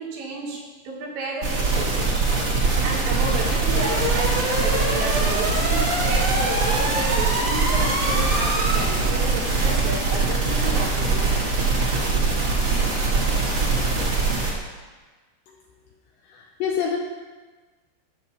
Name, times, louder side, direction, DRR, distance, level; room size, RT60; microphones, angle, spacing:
voice 1, 0.0-11.5, right 2 dB, 80° right, -3 dB, 4.5 m, -32 dB
sound 1, 1.4-14.5, right 3 dB, 60° right, 1.2 m, -22 dB
voice 2, 16.2-17.0, left 7 dB, 80° left, 0 dB, 2.6 m, -28 dB
14.0 x 7.2 x 4.2 m, 1.3 s
omnidirectional pair, 5.8 m